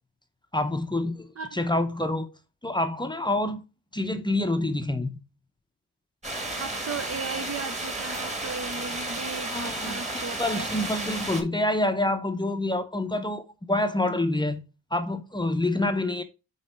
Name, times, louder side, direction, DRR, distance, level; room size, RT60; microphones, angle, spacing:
voice 1, 0.5-2.3 2.6-3.6 3.9-5.2 9.5-10.0 10.4-14.6 14.9-16.2, left 1 dB, 10° left, 0.7 m, -27 dB
sound 1, 6.2-11.4, right 2 dB, 15° right, 1.4 m, -33 dB
voice 2, 6.6-10.7, right 5 dB, 35° right, 0.6 m, -36 dB
7.6 x 3.2 x 4.4 m
cardioid pair, 110°, 41 cm